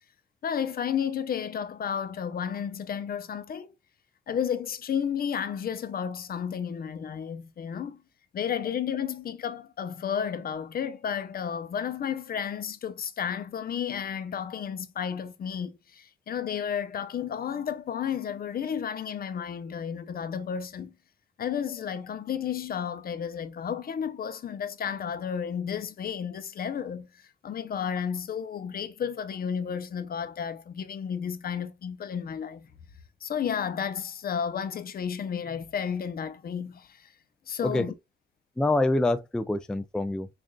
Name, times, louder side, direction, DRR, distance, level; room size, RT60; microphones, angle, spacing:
voice 1, 0.4-3.7 4.3-8.0 8.3-20.9 21.4-32.7 33.2-37.1 37.5-37.9, left 8 dB, 50° left, 0.6 m, -32 dB
voice 2, 37.6-37.9 38.6-40.3, left 2 dB, 5° left, 0.3 m, -26 dB
6.3 x 2.5 x 2.3 m
cardioid pair, 90°, 20 cm